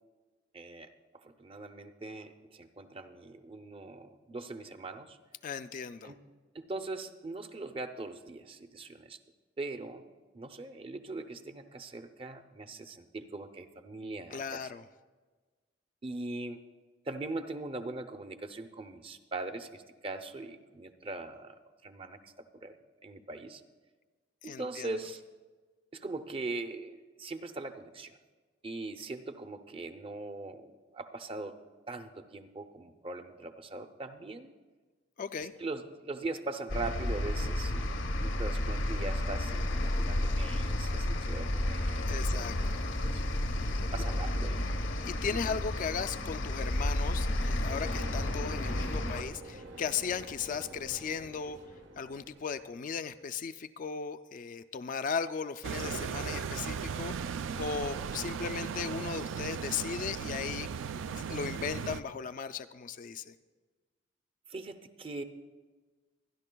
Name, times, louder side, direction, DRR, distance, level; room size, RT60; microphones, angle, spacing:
voice 1, 0.5-5.2 6.0-6.2 6.5-9.2 9.6-10.0 10.3-14.7 16.0-16.6 17.1-23.6 24.4-25.2 25.9-28.2 28.6-31.6 31.9-34.5 35.6-42.0 42.3-42.7 43.0-43.2 43.9-44.6 45.3-45.6 64.5-65.2, right 2 dB, 30° right, 8 dB, 0.6 m, -41 dB
voice 2, 5.4-6.1 14.3-14.8 24.4-24.9 35.2-35.5 42.1-42.8 43.7-43.8 45.0-51.6 52.0-60.7 61.3-63.3, left 6 dB, 45° left, 11 dB, 0.3 m, -37 dB
sound 1, 36.7-49.2, left 1 dB, 80° left, 0.9 m, -31 dB
sound 2, 47.7-52.7, right 2 dB, 75° right, 1.1 m, -48 dB
sound 3, 55.6-62.0, right 6 dB, 90° right, 0.4 m, -37 dB
24.0 x 10.5 x 2.2 m, 1.3 s
head